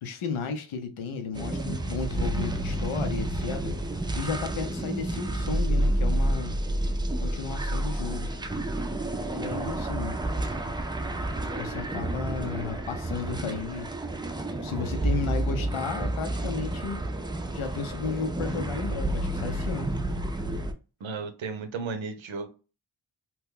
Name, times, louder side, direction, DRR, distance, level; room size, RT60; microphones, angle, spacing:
voice 1, 0.0-3.7 4.1-6.6 7.2-8.3 9.3-10.1 11.6-13.9 14.6-17.0 17.5-19.9, left 5 dB, 90° left, 0.7 m, -34 dB
sound 1, 1.3-20.7, right 1 dB, 10° right, 0.3 m, -30 dB
voice 2, 21.0-22.5, right 4 dB, 75° right, 0.7 m, -34 dB
2.9 x 2.2 x 3.6 m
cardioid pair, 50°, 48 cm